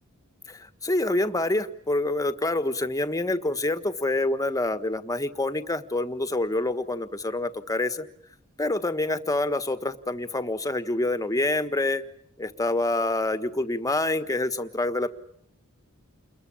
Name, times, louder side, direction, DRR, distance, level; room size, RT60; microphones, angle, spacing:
voice 1, 0.5-8.1 8.6-12.0 12.4-15.1, left 2 dB, 15° left, 10 dB, 1.4 m, -27 dB
30.0 x 21.5 x 8.7 m, 0.69 s
head